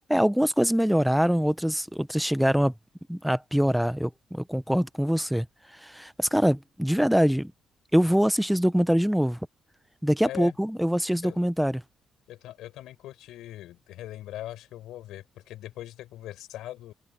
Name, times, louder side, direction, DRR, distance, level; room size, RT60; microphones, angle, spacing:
voice 1, 0.1-2.7 3.1-7.5 7.9-9.4 10.0-11.8, equal, ahead, 0.7 m, -24 dB
voice 2, 10.2-10.6 11.2-11.4 12.3-16.9, left 14 dB, 90° left, 5.0 m, -41 dB
cardioid pair, 90°, 0 cm